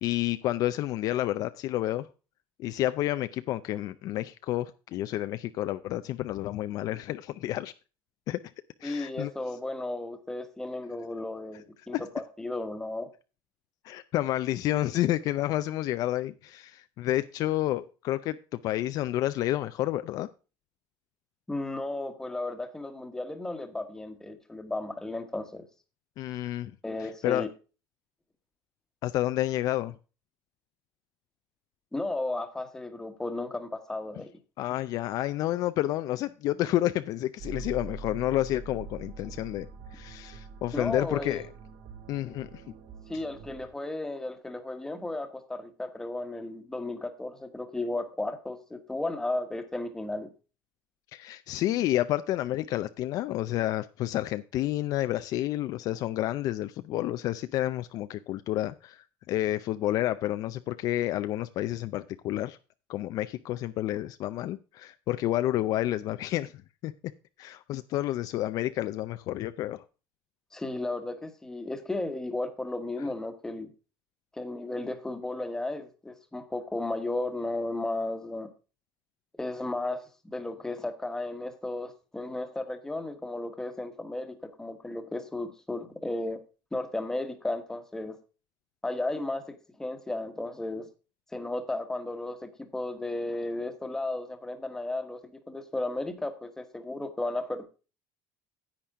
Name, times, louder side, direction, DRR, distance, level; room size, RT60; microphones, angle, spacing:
voice 1, 0.0-2.1 2.6-7.7 8.3-8.4 8.8-9.3 11.9-12.0 13.8-20.3 26.2-26.7 27.0-27.5 29.0-29.9 34.6-41.4 42.1-42.6 51.1-62.6 62.9-66.5 66.8-66.9 67.4-69.8, left 14 dB, 45° left, 12 dB, 0.4 m, -30 dB
voice 2, 8.8-13.1 21.5-25.7 26.8-27.5 31.9-34.3 40.7-41.4 43.1-50.3 70.5-73.7 74.3-78.5 79.4-86.4 86.7-88.2 88.8-90.9 91.3-97.6, left 2 dB, 5° left, 8 dB, 1.2 m, -34 dB
sound 1, 37.4-43.7, right 4 dB, 65° right, 2.4 m, -44 dB
10.0 x 8.8 x 3.6 m, 0.33 s
cardioid pair, 170°, 8 cm